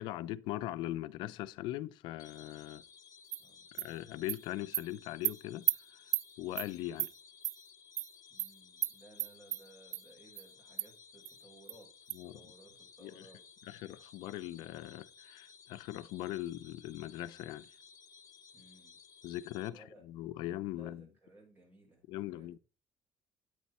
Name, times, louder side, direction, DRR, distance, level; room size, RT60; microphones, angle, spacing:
voice 1, 0.0-2.8 3.7-6.0 6.4-7.1 12.1-12.4 13.0-13.3 13.6-17.7 19.2-21.1 22.1-22.6, left 15 dB, 80° left, 0.5 m, -40 dB
sound 1, 2.2-19.7, left 6 dB, 50° left, 1.0 m, -58 dB
Animal, 3.3-3.4 3.8-3.9 4.3-4.4 4.7-4.8 5.2-5.3 5.7-5.8 6.1-6.2 6.6-6.7 7.0-7.1 7.4-7.5 8.0-8.1 8.4-8.5 8.8-8.9 9.2-9.6 9.9-10.0 10.4-10.5 10.8-10.9 11.2-11.3 11.7-11.8 12.1-12.2, right 16 dB, 85° right, 0.4 m, -32 dB
voice 2, 8.3-11.9 12.2-13.4 18.5-19.0 19.7-20.0 20.7-22.6, right 2 dB, 25° right, 6.2 m, -59 dB
9.3 x 8.9 x 4.2 m
cardioid pair, 145°, 8 cm